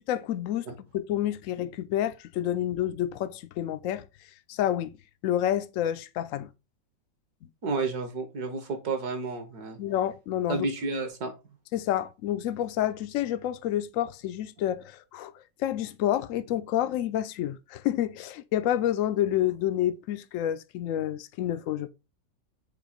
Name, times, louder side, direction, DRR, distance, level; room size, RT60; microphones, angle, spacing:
voice 1, 0.1-4.0 4.5-4.9 5.2-6.5 9.8-10.7 11.7-15.3 15.6-21.9, left 11 dB, 75° left, 0.7 m, -29 dB
voice 2, 7.6-9.8 10.5-11.3, right 3 dB, 60° right, 1.8 m, -31 dB
7.1 x 3.0 x 5.0 m
omnidirectional pair, 1.9 m